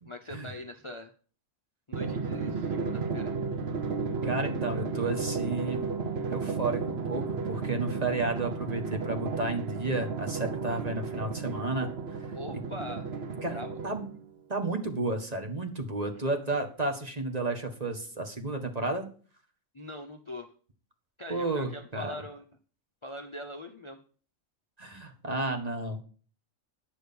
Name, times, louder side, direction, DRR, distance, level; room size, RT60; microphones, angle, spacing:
voice 1, 0.1-1.1 1.9-3.3 12.3-13.1 13.5-13.7 19.7-20.5 21.2-22.4 23.0-24.0, left 1 dB, 30° left, 5 dB, 0.7 m, -41 dB
Drum, 1.9-14.3, right 4 dB, 55° right, 1.2 m, -33 dB
voice 2, 4.2-5.8 6.3-11.9 13.4-13.6 13.8-14.1 14.5-19.1 21.3-22.1 24.8-26.0, right 2 dB, 30° right, 4 dB, 1.7 m, -32 dB
10.0 x 6.4 x 7.1 m, 0.42 s
omnidirectional pair, 1.4 m